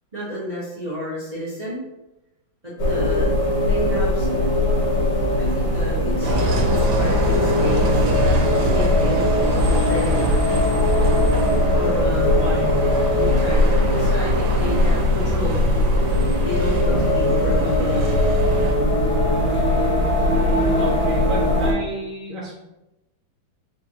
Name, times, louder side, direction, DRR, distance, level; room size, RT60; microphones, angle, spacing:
voice 1, 0.1-1.8 2.6-4.3 5.4-8.0 8.6-10.4 11.7-16.1 16.4-18.2, equal, 25° right, -9 dB, 1.0 m, -31 dB
sound 1, 2.8-21.7, left 1 dB, 70° left, 2.1 m, -20 dB
Bus, 6.2-18.7, right 1 dB, 85° right, 1.7 m, -26 dB
voice 2, 12.3-12.8 20.3-22.5, equal, ahead, -8 dB, 0.8 m, -32 dB
5.1 x 3.0 x 2.8 m, 0.94 s
omnidirectional pair, 2.4 m